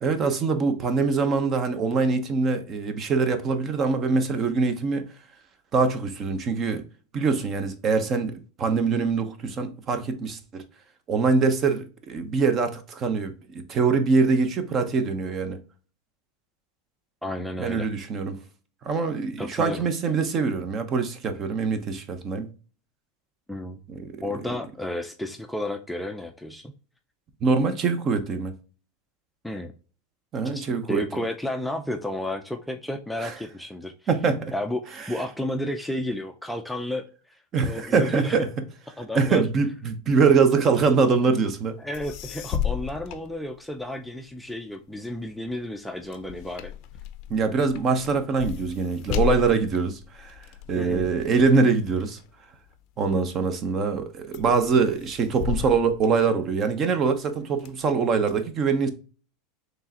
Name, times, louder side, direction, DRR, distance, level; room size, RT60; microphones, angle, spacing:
voice 1, 0.0-5.1 5.7-6.8 7.1-8.3 8.6-10.6 11.1-15.6 17.6-18.4 18.8-22.5 23.9-24.2 27.4-28.5 30.3-31.0 33.2-33.3 34.1-34.5 37.5-38.5 39.1-41.8 47.3-52.2 53.0-58.9, right 4 dB, 35° right, 0.8 m, -23 dB
voice 2, 17.2-17.9 19.4-19.8 23.5-23.8 24.2-26.7 29.4-29.7 30.5-33.9 34.5-37.0 37.6-38.5 39.0-39.4 41.8-46.7 50.7-51.1, left 1 dB, 5° left, 0.4 m, -32 dB
sound 1, 41.7-41.8 41.9-44.0 44.5-53.2 53.7-54.0 54.3-56.8 57.3-58.3, left 10 dB, 55° left, 0.5 m, -34 dB
4.6 x 3.2 x 2.8 m
supercardioid pair, 130°, 0 cm